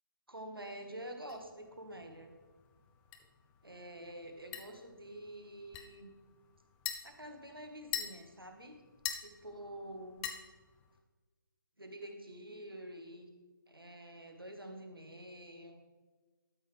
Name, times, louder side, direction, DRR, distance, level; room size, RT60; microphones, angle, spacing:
voice 1, 0.3-2.3 3.6-6.1 7.0-8.8 9.2-10.3 11.8-13.4 13.7-15.8, right 1 dB, 85° right, 4 dB, 1.6 m, -48 dB
sound 1, 1.3-11.0, left 10 dB, 10° left, 0.4 m, -46 dB
12.5 x 6.3 x 3.4 m, 1.3 s
figure-of-eight pair, 145°, 12 cm